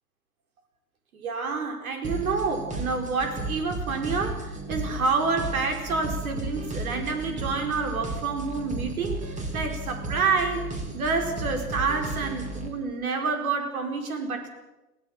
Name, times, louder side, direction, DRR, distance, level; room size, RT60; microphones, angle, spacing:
voice 1, 1.1-10.6 10.9-14.5, right 4 dB, 65° right, 5 dB, 4.7 m, -28 dB
sound 1, 2.0-12.7, right 2 dB, 15° right, 3.4 m, -34 dB
22.0 x 16.5 x 7.3 m, 1.1 s
hypercardioid pair, 115°, 46 cm